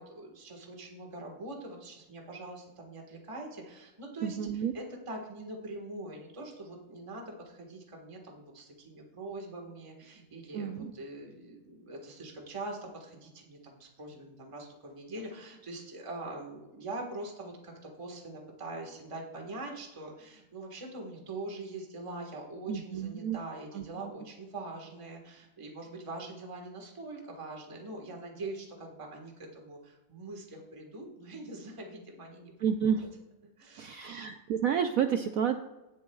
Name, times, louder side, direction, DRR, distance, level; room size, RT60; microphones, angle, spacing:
voice 1, 0.0-32.5 32.8-33.0 33.6-34.3, right 2 dB, 20° right, 1 dB, 1.4 m, -43 dB
voice 2, 4.2-4.7 10.5-10.9 22.7-23.4 23.7-24.1 32.6-33.1 33.8-35.6, right 8 dB, 90° right, 7 dB, 0.7 m, -30 dB
18.0 x 7.2 x 2.4 m, 1.0 s
omnidirectional pair, 2.1 m